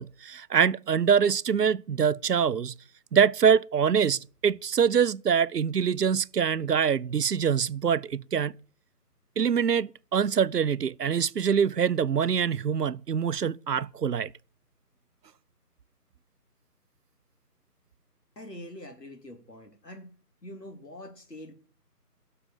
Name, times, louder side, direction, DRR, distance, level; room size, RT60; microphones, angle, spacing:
voice 1, 0.0-2.7 3.1-8.6 9.4-14.3, right 7 dB, 80° right, 0.7 m, -24 dB
voice 2, 18.4-20.2 20.4-21.5, left 1 dB, 85° left, 3.5 m, -44 dB
16.0 x 6.6 x 7.3 m
figure-of-eight pair, 170°, 48 cm